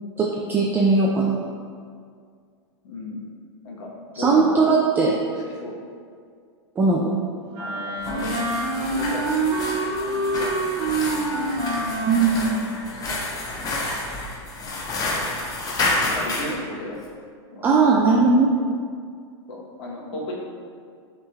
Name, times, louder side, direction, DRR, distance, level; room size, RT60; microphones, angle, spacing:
voice 1, 0.2-1.4 4.1-5.2 6.8-7.2 12.1-12.6 17.6-18.5, right 4 dB, 15° right, -2 dB, 0.3 m, -19 dB
voice 2, 2.8-3.2 3.6-4.9 5.3-5.8 7.6-8.3 8.8-9.3 10.0-10.5 10.8-11.6 16.1-17.0 17.5-18.0 19.5-20.4, equal, 65° left, -3 dB, 1.0 m, -35 dB
Wind instrument woodwind instrument, 7.5-12.8, right 2 dB, 35° right, 1.1 m, -26 dB
sound 1, 8.0-16.6, left 2 dB, 25° left, 0.7 m, -29 dB
7.0 x 3.2 x 2.3 m, 2.1 s
hypercardioid pair, 135°, 15 cm